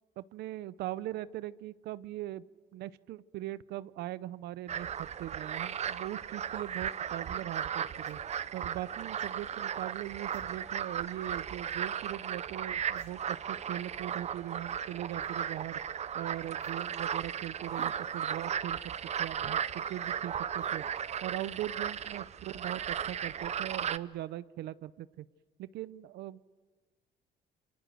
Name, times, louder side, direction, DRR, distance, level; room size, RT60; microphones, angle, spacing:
voice 1, 0.2-2.4 2.7-8.2 8.5-15.8 16.1-18.8 19.2-20.8 21.2-25.3 25.6-26.4, right 14 dB, 75° right, 17 dB, 0.8 m, -40 dB
sound 1, 4.7-24.0, right 8 dB, 40° right, 0.8 m, -36 dB
sound 2, 8.0-8.2 9.2-9.4 10.3-10.5 11.8-11.9 12.2-12.3 12.9-13.2 13.4-13.5 14.1-14.3 15.0-15.3 16.5-16.7 17.7-17.9 18.7-18.9 20.6-20.9 21.3-21.5, left 6 dB, 60° left, 4.9 m, -61 dB
28.0 x 25.5 x 7.9 m, 1.3 s
cardioid pair, 110°, 17 cm